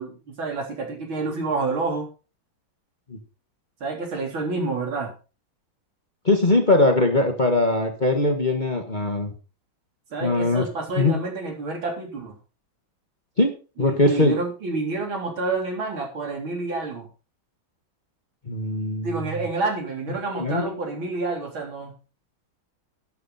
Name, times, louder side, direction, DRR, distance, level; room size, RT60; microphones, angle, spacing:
voice 1, 0.0-2.1 3.8-5.1 10.1-12.4 13.8-17.1 19.0-21.9, right 3 dB, 75° right, 1 dB, 4.3 m, -28 dB
voice 2, 6.2-9.3 10.2-10.7 11.0-11.2 13.4-14.4 18.5-19.3 20.3-20.7, left 2 dB, 25° left, 4 dB, 1.5 m, -21 dB
11.5 x 10.5 x 4.1 m, 0.34 s
omnidirectional pair, 2.2 m